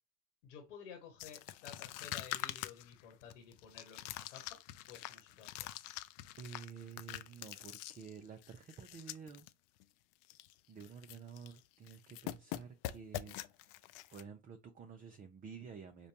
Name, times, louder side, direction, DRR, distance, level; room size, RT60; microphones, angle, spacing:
voice 1, 0.4-4.6 4.9-5.5, left 7 dB, 80° left, 1.2 m, -53 dB
sound 1, 1.2-9.5 9.8-9.9 10.2-10.5 10.8-11.6 11.9-14.2, left 15 dB, 60° left, 0.5 m, -45 dB
voice 2, 6.4-9.5 10.7-13.8 14.1-16.1, right 6 dB, 25° right, 0.5 m, -51 dB
5.0 x 2.2 x 2.8 m
hypercardioid pair, 95°, 36 cm